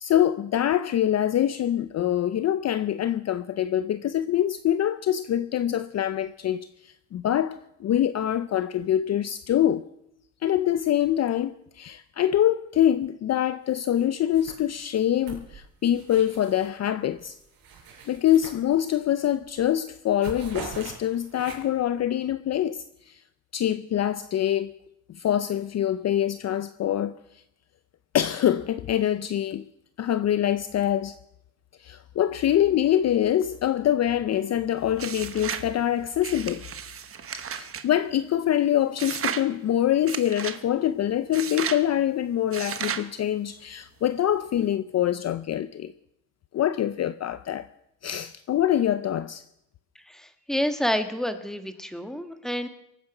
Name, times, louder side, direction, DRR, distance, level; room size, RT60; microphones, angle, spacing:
voice 1, 0.0-9.9 10.4-17.4 18.1-23.2 23.5-24.7 25.1-27.1 28.1-29.6 30.0-31.2 31.8-36.6 37.3-45.9 46.5-47.7 48.0-49.4, left 11 dB, 40° left, 0.6 m, -25 dB
sound 1, 13.7-14.0 14.3-16.8 17.2-19.1 19.4-19.7 19.9-21.9, right 5 dB, 65° right, 5.6 m, -43 dB
sound 2, 35.0-35.7 36.2-37.9 39.0-39.5 40.1-40.6 41.3-41.8 42.5-43.1, right 7 dB, 35° right, 1.2 m, -33 dB
voice 2, 50.1-52.7, equal, ahead, 1.5 m, -29 dB
23.0 x 9.5 x 5.9 m
cardioid pair, 120°, 39 cm